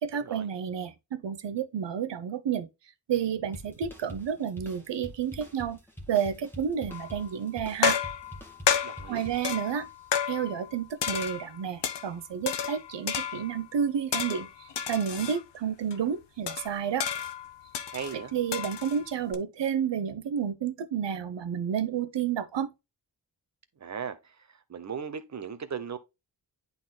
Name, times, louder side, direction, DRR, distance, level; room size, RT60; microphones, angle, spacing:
voice 1, 0.0-2.7 3.1-5.8 6.1-8.0 9.1-9.9 10.3-14.5 14.9-17.1 18.3-22.7, right 8 dB, 90° right, 0.9 m, -30 dB
sound 1, 3.5-9.9, equal, 5° left, 1.6 m, -46 dB
sound 2, 6.9-7.3 7.8-10.7 11.0-12.1 12.5-13.6 14.1-15.4 15.9-16.0 16.5-19.4, left 8 dB, 80° left, 1.0 m, -31 dB
voice 2, 8.8-9.3 17.9-18.3 23.8-26.0, right 7 dB, 40° right, 0.9 m, -37 dB
11.0 x 4.0 x 2.2 m
wide cardioid pair, 145°, 41 cm